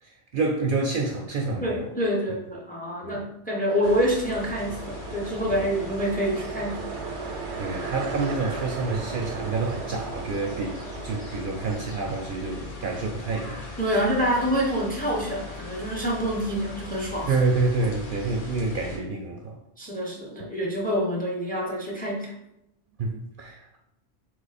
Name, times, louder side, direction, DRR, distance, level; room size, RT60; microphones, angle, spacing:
voice 1, 0.0-1.9 3.0-3.3 5.5-5.7 7.6-14.0 17.3-19.6 23.0-23.8, right 3 dB, 60° right, 1 dB, 0.6 m, -28 dB
voice 2, 1.6-6.8 13.8-17.4 19.8-22.3, equal, 10° left, -2 dB, 0.7 m, -27 dB
sound 1, 3.6-12.7, right 6 dB, 85° right, 0.9 m, -37 dB
sound 2, 3.8-19.0, left 3 dB, 50° left, 0.9 m, -39 dB
3.7 x 2.9 x 4.0 m, 0.84 s
omnidirectional pair, 1.2 m